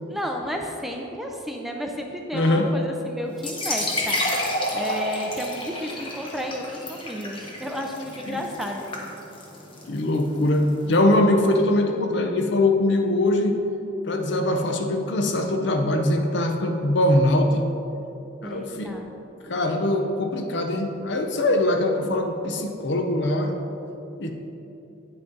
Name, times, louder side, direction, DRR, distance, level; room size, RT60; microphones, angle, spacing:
voice 1, 0.1-9.0 18.4-19.1, equal, ahead, 1 dB, 0.5 m, -32 dB
voice 2, 2.3-2.7 8.3-8.4 9.9-13.6 14.0-17.7 18.4-18.9 19.4-23.6 24.2-24.3, left 1 dB, 60° left, 4 dB, 0.7 m, -22 dB
sound 1, 3.3-10.9, left 1 dB, 25° left, 1.1 m, -30 dB
8.9 x 5.9 x 3.9 m, 2.9 s
head